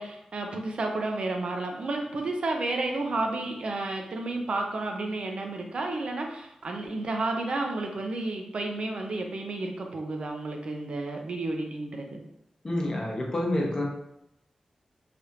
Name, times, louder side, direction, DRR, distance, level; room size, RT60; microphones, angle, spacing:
voice 1, 0.0-12.2, right 2 dB, 60° right, 2 dB, 0.5 m, -31 dB
voice 2, 12.6-13.8, left 1 dB, 30° left, -2 dB, 0.7 m, -28 dB
3.3 x 2.4 x 2.8 m, 0.82 s
wide cardioid pair, 120°, 2 cm